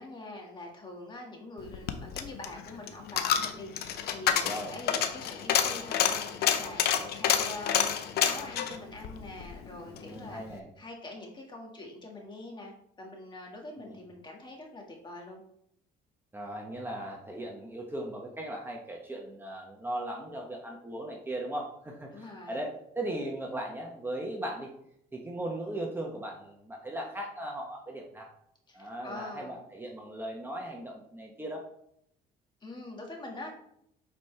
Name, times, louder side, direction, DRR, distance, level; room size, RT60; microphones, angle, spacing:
voice 1, 0.0-12.7 13.0-15.4 22.1-22.6 28.7-29.6 32.6-33.6, left 2 dB, 25° left, 0 dB, 1.8 m, -44 dB
Coin (dropping), 1.6-10.1 10.4-10.5, left 9 dB, 70° left, 0.7 m, -29 dB
voice 2, 10.0-10.7 13.8-14.0 16.3-24.7 25.1-28.3 28.7-31.6, right 1 dB, 10° right, -1 dB, 1.0 m, -38 dB
8.3 x 4.3 x 3.3 m, 0.74 s
cardioid pair, 110°, 17 cm